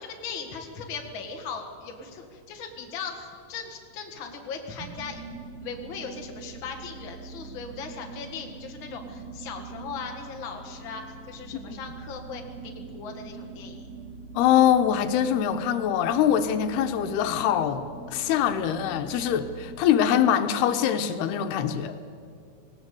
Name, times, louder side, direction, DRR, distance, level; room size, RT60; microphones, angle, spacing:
voice 1, 0.0-5.2 5.6-13.9, left 5 dB, 40° left, 2 dB, 2.1 m, -38 dB
sound 1, 4.8-19.8, right 4 dB, 80° right, 4.0 m, -43 dB
voice 2, 14.4-22.0, left 9 dB, 90° left, 8 dB, 3.0 m, -23 dB
19.0 x 18.0 x 8.5 m, 2.4 s
omnidirectional pair, 4.5 m